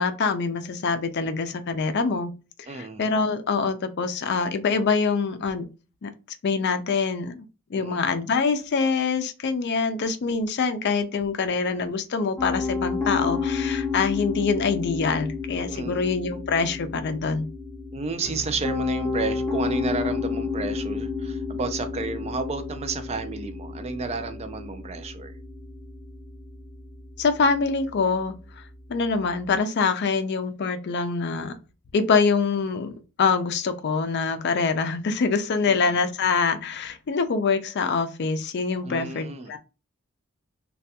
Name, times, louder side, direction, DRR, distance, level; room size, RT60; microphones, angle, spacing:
voice 1, 0.0-2.3 2.7-5.6 6.0-6.1 6.4-7.4 7.7-17.5 27.2-28.3 28.9-31.6 31.9-39.6, left 4 dB, 55° left, 0.4 m, -25 dB
voice 2, 2.7-3.0 7.7-8.0 15.7-16.1 17.9-25.3 35.6-35.9 38.8-39.5, right 3 dB, 30° right, 0.4 m, -32 dB
Piano, 12.4-29.5, left 4 dB, 15° left, 0.7 m, -31 dB
3.3 x 2.3 x 2.7 m
head